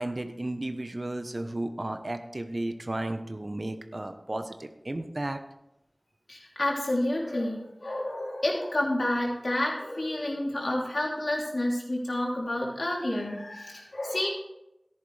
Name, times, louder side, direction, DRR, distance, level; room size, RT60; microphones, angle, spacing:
voice 1, 0.0-5.4, right 1 dB, 50° right, 7 dB, 1.0 m, -33 dB
voice 2, 6.3-14.3, left 1 dB, 75° left, -3 dB, 3.2 m, -29 dB
13.5 x 10.5 x 3.4 m, 0.87 s
wide cardioid pair, 50°, 0 cm